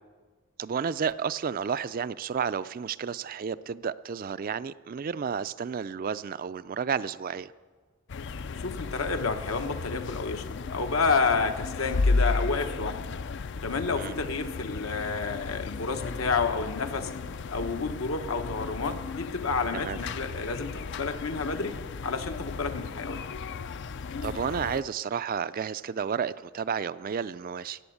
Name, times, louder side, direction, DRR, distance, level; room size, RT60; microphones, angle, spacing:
voice 1, 0.6-7.5 14.0-14.2 19.7-20.0 24.2-27.8, right 6 dB, 45° right, 15 dB, 0.4 m, -31 dB
sound 1, 8.1-24.8, left 3 dB, 55° left, 0.4 m, -34 dB
voice 2, 8.5-13.0 13.6-17.1 17.5-21.7 22.0-23.2, left 4 dB, 80° left, 6 dB, 1.1 m, -30 dB
15.0 x 8.8 x 8.5 m, 1.5 s
head